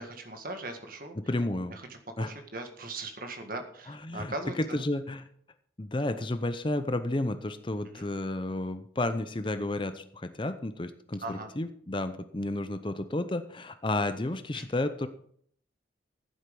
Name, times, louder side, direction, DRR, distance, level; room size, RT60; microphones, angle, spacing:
voice 1, 0.0-1.2 1.7-1.9 2.2-4.8 7.9-8.1 11.2-11.5 14.5-14.7, right 2 dB, 45° right, 5 dB, 1.8 m, -39 dB
voice 2, 1.2-1.7 2.2-2.3 3.9-5.2 5.8-15.1, left 1 dB, 25° left, 10 dB, 0.6 m, -32 dB
14.5 x 8.1 x 5.3 m, 0.63 s
head